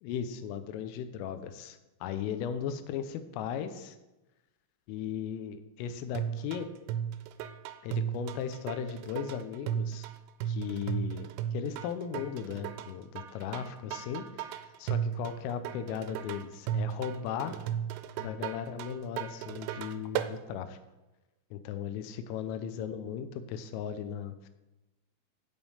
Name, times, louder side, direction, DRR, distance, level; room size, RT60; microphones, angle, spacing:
voice 1, 0.0-4.0 4.9-6.7 7.8-10.1 10.5-17.6 18.2-20.8 21.5-24.5, left 8 dB, 85° left, 9 dB, 3.4 m, -37 dB
sound 1, 6.1-20.3, right 10 dB, 85° right, 2.8 m, -35 dB
16.0 x 5.4 x 5.6 m, 1.0 s
omnidirectional pair, 5.8 m